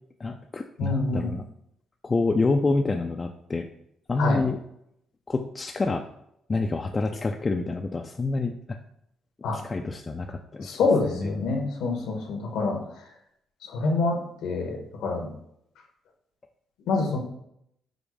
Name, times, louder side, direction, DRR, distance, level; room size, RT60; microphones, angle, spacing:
voice 1, 0.2-1.4 2.0-3.7 4.1-4.6 5.3-6.0 6.5-8.8 9.5-10.8 11.1-11.6, left 3 dB, 30° left, 3 dB, 0.3 m, -27 dB
voice 2, 0.8-1.3 4.2-4.4 9.4-9.6 10.6-12.8 13.7-15.3 16.9-17.2, left 3 dB, 90° left, 2 dB, 1.1 m, -26 dB
5.2 x 2.1 x 4.7 m, 0.75 s
cardioid pair, 90°, 0 cm